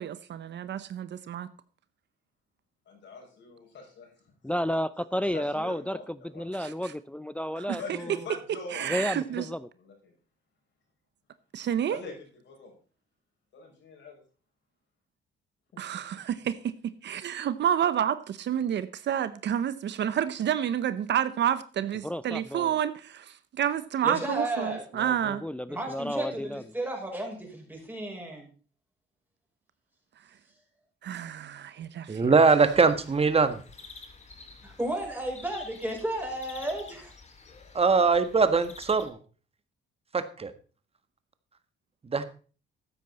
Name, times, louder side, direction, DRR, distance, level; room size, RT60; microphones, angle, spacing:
voice 1, 0.0-1.5 6.6-6.9 7.6-8.0 8.7-9.5 11.5-12.0 15.8-25.4 31.0-32.3, right 10 dB, 65° right, 14 dB, 0.8 m, -29 dB
voice 2, 2.9-4.1 5.3-6.4 7.7-9.5 9.8-10.1 11.9-12.1 12.5-12.7 13.5-14.2 15.9-16.0, left 3 dB, 65° left, 1 dB, 6.3 m, -43 dB
voice 3, 4.4-8.3 8.8-9.7 22.0-22.8 24.9-26.6, equal, 5° left, 15 dB, 0.5 m, -32 dB
voice 4, 24.0-24.8 25.7-28.5 34.6-37.1, right 1 dB, 10° right, 0 dB, 5.7 m, -33 dB
voice 5, 32.1-33.6 37.7-39.2 40.1-40.5 42.0-42.2, right 4 dB, 30° right, 11 dB, 1.4 m, -22 dB
sound 1, 32.6-39.1, left 4 dB, 35° left, 2.4 m, -50 dB
13.0 x 9.4 x 4.2 m, 0.38 s
cardioid pair, 90°, 20 cm